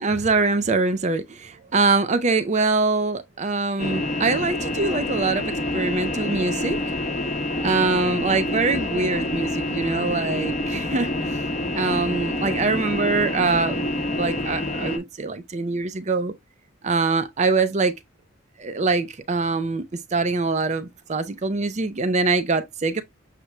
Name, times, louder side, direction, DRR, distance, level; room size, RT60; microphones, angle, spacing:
voice 1, 0.0-6.8 7.6-11.1 11.7-13.9 14.2-16.3 16.8-17.9 18.6-19.8 20.1-23.0, right 3 dB, 35° right, 0.5 m, -23 dB
sound 1, 3.8-15.0, left 1 dB, 35° left, 0.8 m, -27 dB
6.6 x 2.2 x 2.9 m
head